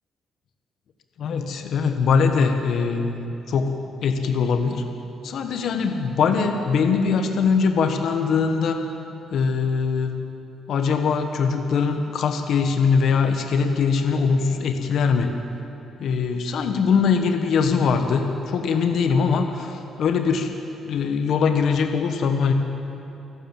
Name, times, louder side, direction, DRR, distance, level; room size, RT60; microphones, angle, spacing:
voice 1, 1.2-3.7 4.0-4.8 5.2-8.8 9.3-10.1 10.7-15.3 16.0-20.5 20.8-22.5, left 5 dB, 70° left, 5 dB, 1.5 m, -22 dB
30.0 x 12.0 x 7.6 m, 2.8 s
cardioid pair, 90°, 0 cm